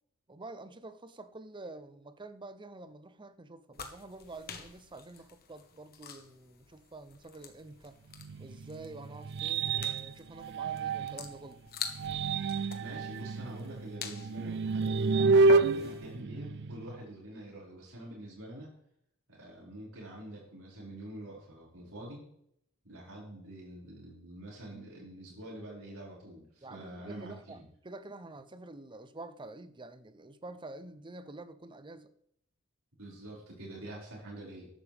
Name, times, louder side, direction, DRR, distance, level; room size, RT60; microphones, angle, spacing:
voice 1, 0.3-8.0 8.4-11.7 26.6-32.1, right 2 dB, 20° right, 0.7 m, -48 dB
sound 1, 3.7-16.1, left 5 dB, 45° left, 1.3 m, -46 dB
sound 2, 8.2-11.3 11.8-17.0, right 3 dB, 55° right, 0.4 m, -29 dB
voice 2, 12.8-18.7 19.3-22.2 22.8-27.6 33.0-34.7, right 1 dB, 80° right, 5.5 m, -46 dB
14.0 x 11.5 x 3.5 m
head